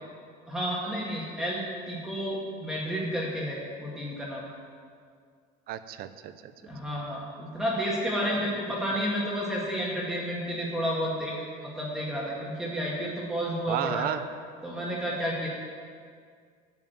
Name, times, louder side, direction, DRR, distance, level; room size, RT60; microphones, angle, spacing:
voice 1, 0.5-4.4 6.6-11.3 11.6-14.1 14.6-15.5, equal, ahead, -5 dB, 1.9 m, -31 dB
voice 2, 5.7-6.5 13.7-14.2, right 11 dB, 55° right, 12 dB, 0.8 m, -32 dB
11.0 x 7.5 x 9.2 m, 2.1 s
cardioid pair, 145°, 18 cm